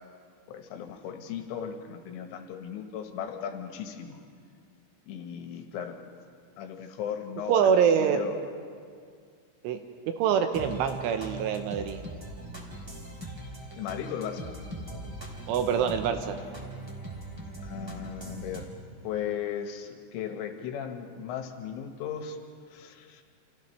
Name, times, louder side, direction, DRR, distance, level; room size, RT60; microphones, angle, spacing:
voice 1, 0.5-4.2 5.1-6.0 6.6-7.7 8.0-8.4 13.8-14.5 17.6-18.7 19.0-22.4 22.7-23.2, left 8 dB, 75° left, 4 dB, 3.6 m, -36 dB
voice 2, 7.5-8.2 9.6-9.8 10.2-12.0 15.5-16.4, right 7 dB, 80° right, 7 dB, 3.2 m, -25 dB
sound 1, 10.5-18.7, right 1 dB, 15° right, 1.0 m, -40 dB
29.0 x 28.0 x 3.3 m, 2.1 s
omnidirectional pair, 6.0 m